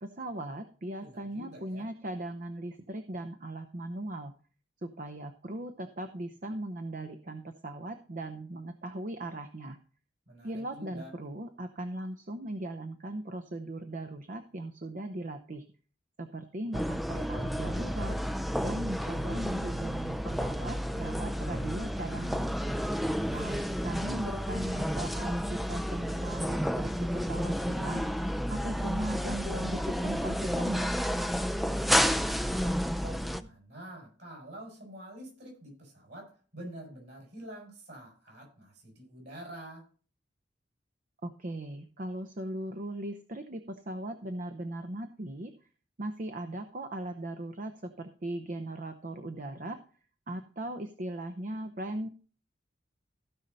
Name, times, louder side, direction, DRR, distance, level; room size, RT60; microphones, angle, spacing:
voice 1, 0.0-4.3 4.8-9.8 10.4-15.6 16.2-18.2 18.6-22.6 23.3-28.0 28.5-30.9 41.2-45.5 46.0-49.8 50.3-52.1, right 1 dB, 45° right, 8 dB, 0.7 m, -38 dB
voice 2, 1.0-1.9 10.3-11.1 23.1-24.0 31.6-39.9, right 1 dB, 60° right, 0 dB, 6.1 m, -47 dB
sound 1, 16.7-33.4, equal, ahead, 0.4 m, -31 dB
15.5 x 5.5 x 4.0 m, 0.40 s
head